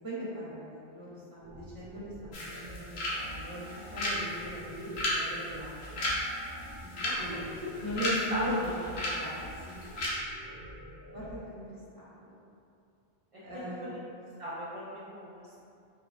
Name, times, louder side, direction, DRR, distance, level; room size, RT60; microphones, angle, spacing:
voice 1, 0.0-6.1 6.8-6.9 7.2-7.4 7.8-9.4 9.6-9.8 11.1-12.4 13.4-13.9 15.4-15.6, equal, 25° right, -9 dB, 0.7 m, -39 dB
sound 1, 1.4-11.4, equal, 50° left, 0.7 m, -47 dB
sound 2, 2.3-10.1, left 1 dB, 85° left, 0.9 m, -35 dB
voice 2, 7.0-7.4 8.0-8.4 13.3-13.4 13.8-13.9 14.4-15.5, equal, 50° right, -9 dB, 0.4 m, -39 dB
3.2 x 2.1 x 2.4 m, 2.5 s
omnidirectional pair, 1.0 m